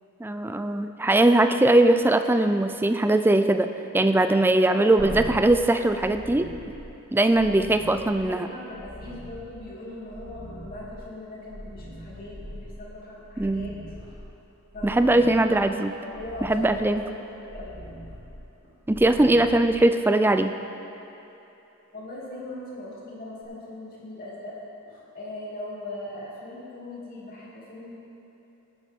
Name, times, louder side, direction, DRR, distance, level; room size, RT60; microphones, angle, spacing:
voice 1, 0.2-3.7 3.9-6.5 7.1-8.5 13.4-13.7 14.8-15.9 16.5-17.0 18.9-20.5, right 1 dB, 10° right, 8 dB, 0.4 m, -20 dB
voice 2, 4.6-5.2 8.2-14.2 14.7-15.1 15.8-18.2 18.6-18.7 21.9-28.0, left 2 dB, 45° left, -6 dB, 2.8 m, -40 dB
sound 1, 5.0-20.3 23.4-23.5, equal, 75° right, 3.0 m, -42 dB
17.5 x 9.1 x 3.7 m, 3.0 s
head